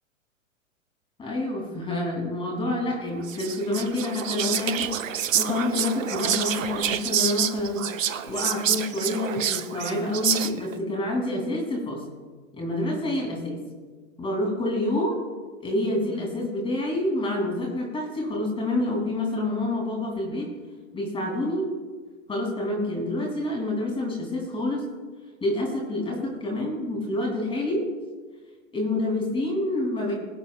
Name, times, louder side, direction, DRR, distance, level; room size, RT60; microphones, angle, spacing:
voice 1, 1.2-4.9 5.3-7.8 8.3-12.0 12.5-13.6 14.2-15.2 15.6-20.5 20.9-21.7 22.3-24.8 25.4-27.8 28.7-30.1, left 1 dB, 15° left, -2 dB, 3.1 m, -27 dB
Whispering, 3.3-10.7, right 9 dB, 70° right, 0.8 m, -27 dB
22.0 x 8.0 x 2.4 m, 1.4 s
hypercardioid pair, 120°, 40 cm